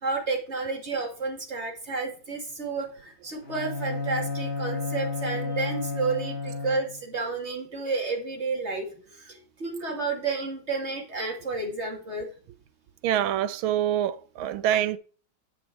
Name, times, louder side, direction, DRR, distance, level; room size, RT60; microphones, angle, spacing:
voice 1, 0.0-12.3, right 3 dB, 35° right, 2.5 m, -31 dB
Bowed string instrument, 3.4-7.2, left 3 dB, 30° left, 1.9 m, -32 dB
voice 2, 13.0-15.0, right 10 dB, 90° right, 1.5 m, -25 dB
9.8 x 6.2 x 4.6 m
omnidirectional pair, 2.2 m